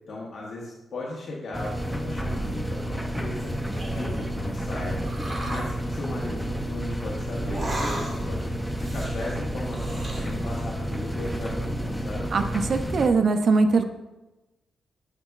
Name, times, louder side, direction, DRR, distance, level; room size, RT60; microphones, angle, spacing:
voice 1, 0.1-3.5 3.9-5.1 5.4-8.5 8.9-12.3, left 2 dB, 65° left, -4 dB, 1.2 m, -36 dB
sound 1, 1.5-13.1, equal, 5° left, 0.5 m, -30 dB
sound 2, 3.4-4.4 5.0-5.7 7.4-8.4 8.7-10.6 11.0-11.5, right 1 dB, 30° right, 1.2 m, -36 dB
voice 2, 12.3-13.8, right 4 dB, 50° right, 7 dB, 0.4 m, -21 dB
7.7 x 5.8 x 2.4 m, 1.0 s
cardioid pair, 110°, 0 cm